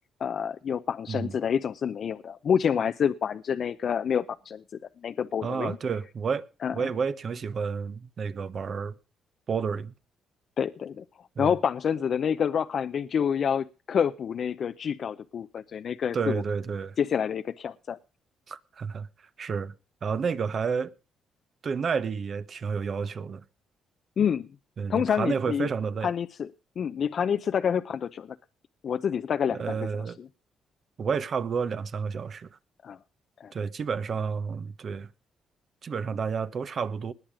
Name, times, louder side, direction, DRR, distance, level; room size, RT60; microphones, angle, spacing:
voice 1, 0.2-4.6 5.0-5.8 6.6-6.9 10.6-11.0 11.4-16.4 17.0-18.0 24.2-24.5 24.9-25.7 26.0-26.5 26.8-28.4 28.8-30.3 32.8-33.0 33.4-33.5, left 7 dB, 55° left, 0.6 m, -28 dB
voice 2, 5.4-6.4 6.7-8.9 9.5-9.9 11.4-11.5 16.1-17.0 18.5-19.1 19.4-19.7 20.0-20.9 21.6-23.4 24.8-26.1 29.5-30.2 31.0-32.5 33.5-35.1 35.8-37.1, right 6 dB, 50° right, 1.0 m, -30 dB
20.0 x 7.4 x 5.1 m
cardioid pair, 90°, 0 cm